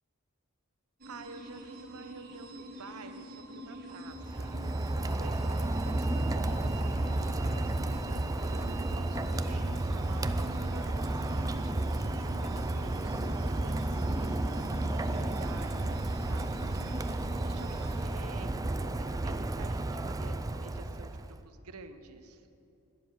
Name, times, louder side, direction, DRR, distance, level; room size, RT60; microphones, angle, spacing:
sound 1, 1.0-18.1, equal, 45° right, 1.8 m, -45 dB
voice 1, 1.0-22.5, right 3 dB, 75° right, 9 dB, 0.9 m, -50 dB
Rain, 4.1-21.4, right 2 dB, 15° right, 0.4 m, -32 dB
12.0 x 10.5 x 7.9 m, 2.8 s
head